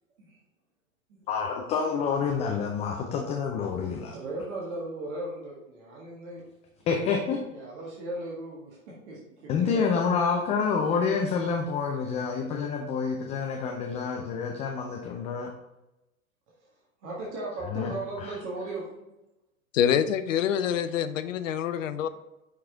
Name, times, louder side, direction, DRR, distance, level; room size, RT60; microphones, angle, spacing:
voice 1, 1.3-4.1 6.9-7.4 9.5-15.5 17.7-17.9 18.2-18.3, left 5 dB, 15° left, 1 dB, 0.4 m, -28 dB
voice 2, 4.1-6.4 7.5-9.9 17.0-19.1 21.4-21.5 22.0-22.1, right 2 dB, 55° right, -4 dB, 1.8 m, -37 dB
voice 3, 19.7-22.1, left 9 dB, 65° left, 12 dB, 0.6 m, -26 dB
5.9 x 4.6 x 3.7 m, 0.97 s
figure-of-eight pair, 100°, 42 cm